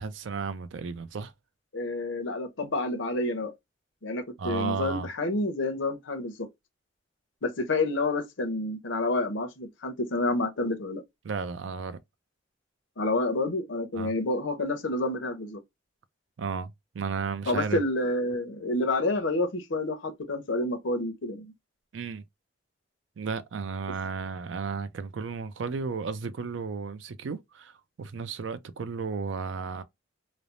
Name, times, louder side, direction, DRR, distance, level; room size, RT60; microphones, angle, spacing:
voice 1, 0.0-1.3 4.4-5.1 11.2-12.0 13.9-14.1 16.4-17.9 21.9-22.2 23.2-29.8, right 5 dB, 80° right, 0.4 m, -34 dB
voice 2, 1.7-3.5 4.0-6.5 7.4-11.0 13.0-15.6 17.5-21.5, left 2 dB, 85° left, 0.7 m, -29 dB
3.2 x 2.0 x 2.5 m
head